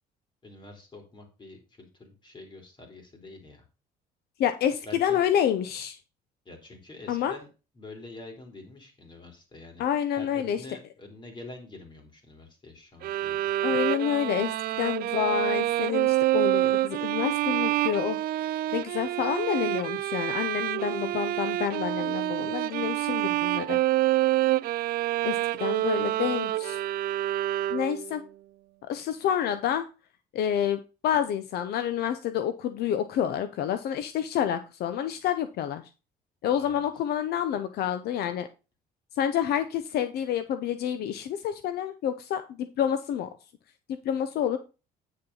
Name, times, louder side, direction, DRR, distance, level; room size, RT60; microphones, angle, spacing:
voice 1, 0.4-3.6 4.9-5.2 6.5-7.5 7.8-9.8 10.1-13.5 36.6-36.8, left 2 dB, 30° left, 3 dB, 3.6 m, -46 dB
voice 2, 4.4-6.0 7.1-7.3 9.8-10.6 13.6-18.2 18.7-23.8 25.2-26.8 27.7-28.2 28.8-29.9 30.3-35.8 36.4-38.5 39.2-43.3 44.0-44.6, left 9 dB, 70° left, 10 dB, 0.8 m, -28 dB
sound 1, 13.0-28.1, right 15 dB, 65° right, 0.5 m, -27 dB
8.8 x 6.9 x 3.9 m, 0.31 s
cardioid pair, 110°, 17 cm